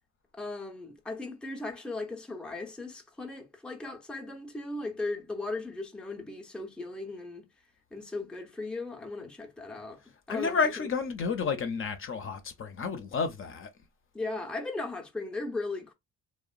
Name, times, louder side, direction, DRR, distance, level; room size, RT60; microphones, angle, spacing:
voice 1, 0.3-7.5 7.9-10.0 10.3-10.9 14.1-15.9, left 2 dB, 5° left, 0.5 m, -37 dB
voice 2, 10.3-13.7, left 5 dB, 45° left, 0.6 m, -30 dB
2.9 x 2.1 x 2.4 m
cardioid pair, 90°, 30 cm